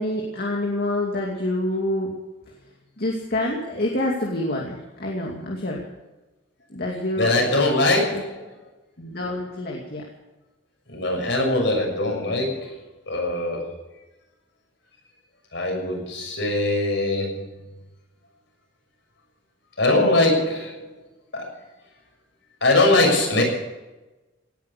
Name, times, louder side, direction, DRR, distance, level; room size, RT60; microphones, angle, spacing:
voice 1, 0.0-2.1 3.0-5.8 6.7-7.3 8.1-8.2 9.0-10.0, left 1 dB, 55° left, -1 dB, 2.5 m, -27 dB
voice 2, 7.2-8.5 10.9-12.8 13.1-13.7 15.5-17.6 19.8-20.9 21.3-21.5 22.6-23.4, left 2 dB, 70° left, 1 dB, 6.6 m, -22 dB
18.0 x 11.0 x 6.7 m, 1.1 s
head